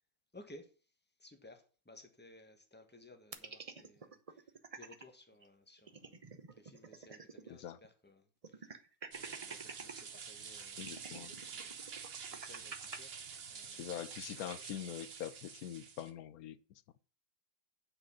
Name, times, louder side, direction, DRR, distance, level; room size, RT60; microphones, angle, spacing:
voice 1, 0.3-0.7 1.2-4.5 4.7-8.7 9.1-13.2 13.5-13.9, left 1 dB, 5° left, 1.4 m, -59 dB
sound 1, 3.3-5.0 5.4-5.5 5.8-7.6 7.8-7.9 8.4-10.0 10.7-13.0, right 4 dB, 30° right, 0.7 m, -49 dB
sound 2, 9.1-16.1, right 6 dB, 50° right, 1.1 m, -48 dB
voice 2, 10.8-11.3 13.7-16.6, left 11 dB, 90° left, 1.1 m, -44 dB
8.9 x 5.1 x 7.2 m
omnidirectional pair, 1.5 m